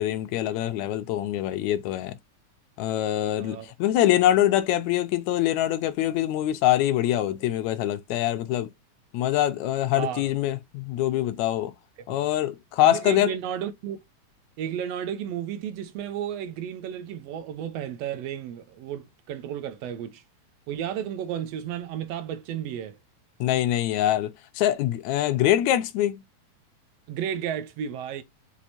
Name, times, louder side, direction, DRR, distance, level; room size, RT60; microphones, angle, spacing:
voice 1, 0.0-2.2 2.8-8.7 9.1-11.7 12.1-13.3 23.4-26.2, left 12 dB, 80° left, 1.9 m, -24 dB
voice 2, 3.4-3.7 9.9-10.3 12.1-12.2 12.8-14.0 14.6-20.2 20.7-23.0 27.1-28.2, right 9 dB, 70° right, 1.8 m, -33 dB
6.2 x 3.0 x 2.8 m
omnidirectional pair, 3.3 m